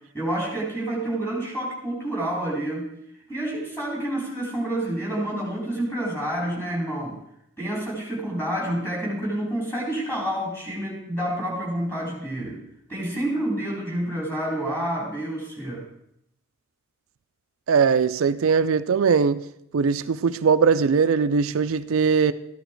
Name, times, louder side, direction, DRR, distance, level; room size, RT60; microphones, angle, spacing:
voice 1, 0.1-2.9 3.3-7.2 7.6-12.6 12.9-15.9, right 1 dB, 10° left, 4.1 m, -28 dB
voice 2, 17.7-19.4 19.7-22.3, right 5 dB, 65° right, 0.4 m, -20 dB
14.0 x 11.5 x 4.5 m
head